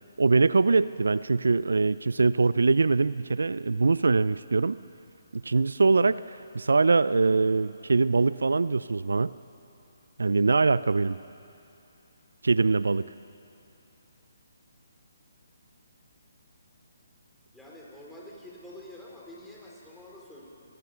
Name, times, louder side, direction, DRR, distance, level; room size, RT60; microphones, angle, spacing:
voice 1, 0.2-4.8 5.3-9.3 10.2-11.2 12.4-13.1, right 3 dB, 75° right, 18 dB, 0.4 m, -23 dB
voice 2, 17.5-20.5, left 1 dB, 5° left, -5 dB, 4.4 m, -47 dB
23.5 x 20.0 x 6.8 m, 2.8 s
figure-of-eight pair, 140°, 0 cm